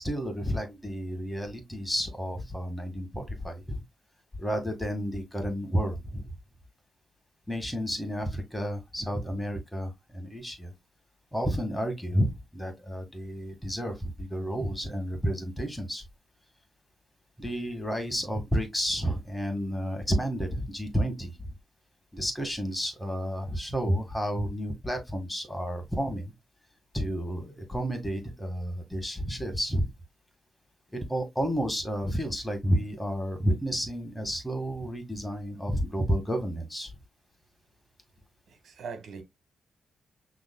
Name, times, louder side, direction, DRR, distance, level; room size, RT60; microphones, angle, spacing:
voice 1, 0.0-3.8 4.4-6.3 7.5-10.7 11.3-16.0 17.4-21.5 22.1-26.3 26.9-29.9 30.9-36.9, equal, 10° left, 1.9 m, -31 dB
voice 2, 38.5-39.2, right 5 dB, 80° right, 1.5 m, -41 dB
6.1 x 3.3 x 2.3 m
cardioid pair, 70°, 0 cm